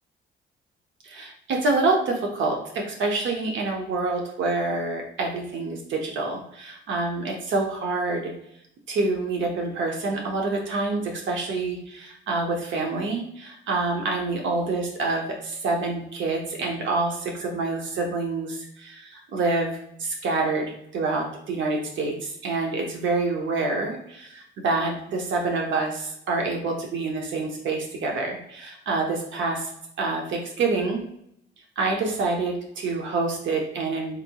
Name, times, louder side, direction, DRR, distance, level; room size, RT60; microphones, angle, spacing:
voice 1, 1.0-8.3 8.9-29.7 30.0-31.0 31.8-34.2, right 3 dB, 70° right, 1 dB, 0.7 m, -27 dB
4.0 x 2.8 x 2.3 m, 0.73 s
cardioid pair, 90°, 20 cm